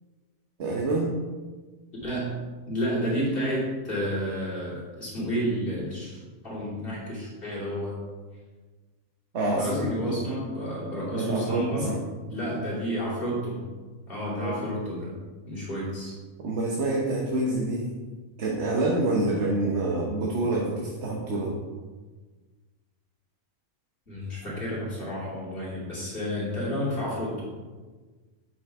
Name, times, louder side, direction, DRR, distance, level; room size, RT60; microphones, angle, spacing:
voice 1, 0.6-1.2 9.3-10.2 11.1-11.9 14.4-14.5 16.4-17.9 18.4-21.5, right 2 dB, 55° right, -2 dB, 1.2 m, -27 dB
voice 2, 2.0-2.4 2.7-8.0 9.5-11.9 12.3-13.7 14.1-15.2 15.5-16.1 24.1-27.5, equal, 40° left, -7 dB, 2.9 m, -31 dB
8.4 x 5.9 x 3.5 m, 1.3 s
omnidirectional pair, 1.4 m